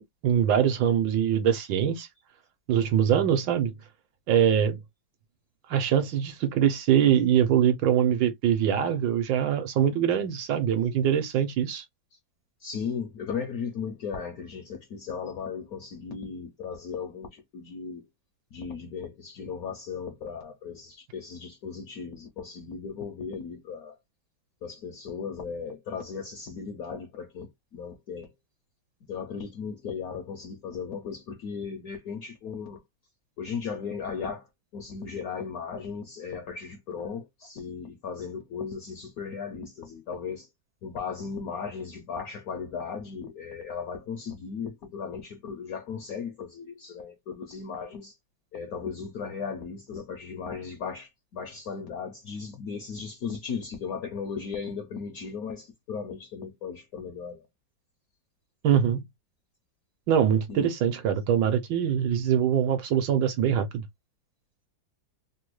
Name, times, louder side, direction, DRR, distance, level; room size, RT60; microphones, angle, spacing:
voice 1, 0.2-2.1 2.7-3.7 4.3-4.8 5.7-11.8 58.6-59.0 60.1-63.7, right 9 dB, 75° right, 1.3 m, -23 dB
voice 2, 12.6-18.1 18.5-23.9 24.6-28.3 29.1-32.8 33.4-34.5 34.7-40.5 40.8-48.2 48.5-57.5 60.5-60.7, left 6 dB, 70° left, 0.9 m, -36 dB
3.3 x 2.1 x 3.0 m
omnidirectional pair, 2.1 m